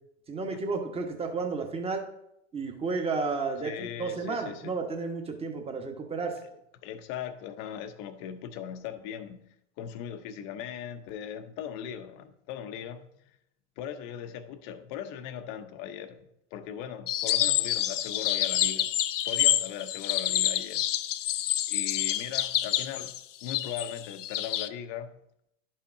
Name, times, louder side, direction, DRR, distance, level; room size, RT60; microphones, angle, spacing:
voice 1, 0.3-2.1 2.5-6.4, right 4 dB, 15° right, 1.3 m, -32 dB
voice 2, 3.6-4.8 6.8-13.3 13.8-16.3 16.5-18.9 19.2-20.8 21.7-25.2, left 9 dB, 45° left, 0.9 m, -39 dB
sound 1, 17.1-24.7, left 13 dB, 75° left, 0.6 m, -28 dB
11.0 x 5.6 x 2.7 m
hypercardioid pair, 105°, 37 cm